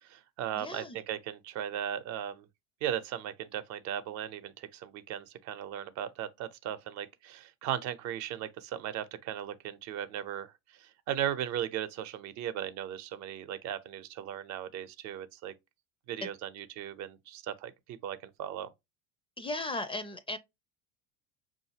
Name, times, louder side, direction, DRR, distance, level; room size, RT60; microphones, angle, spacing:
voice 1, 0.0-2.5 2.8-15.5 16.1-18.7, right 10 dB, 60° right, 0.7 m, -37 dB
voice 2, 0.6-1.0 19.4-20.4, left 2 dB, 15° left, 0.4 m, -36 dB
5.6 x 2.6 x 2.8 m
supercardioid pair, 110°, 32 cm